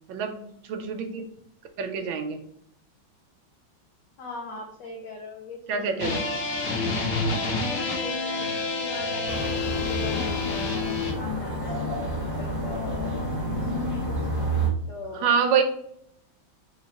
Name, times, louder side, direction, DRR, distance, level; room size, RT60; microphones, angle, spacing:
voice 1, 0.1-1.2 1.8-2.4 5.7-6.3 15.2-15.6, right 6 dB, 75° right, 6 dB, 1.4 m, -26 dB
voice 2, 4.2-6.2 7.2-11.9 12.4-12.8 14.9-15.4, left 3 dB, 65° left, 0 dB, 1.1 m, -40 dB
sound 1, 6.0-11.1, left 3 dB, 85° left, 1.8 m, -28 dB
sound 2, 9.2-14.7, right 1 dB, 10° right, 1.0 m, -29 dB
3.9 x 3.1 x 4.0 m, 0.71 s
omnidirectional pair, 2.3 m